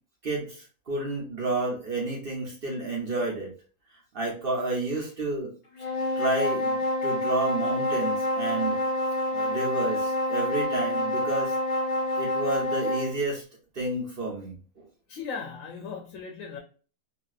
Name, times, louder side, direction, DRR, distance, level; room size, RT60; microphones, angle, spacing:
voice 1, 0.2-3.5 4.1-5.5 6.2-8.8 9.3-11.5 12.2-13.4 13.7-14.8, right 2 dB, 45° right, -3 dB, 1.0 m, -30 dB
sound 1, 5.7-13.2, left 1 dB, 45° left, 1.0 m, -27 dB
voice 2, 15.1-16.6, left 5 dB, 75° left, 3 dB, 1.0 m, -37 dB
2.9 x 2.7 x 2.4 m, 0.38 s
omnidirectional pair, 1.4 m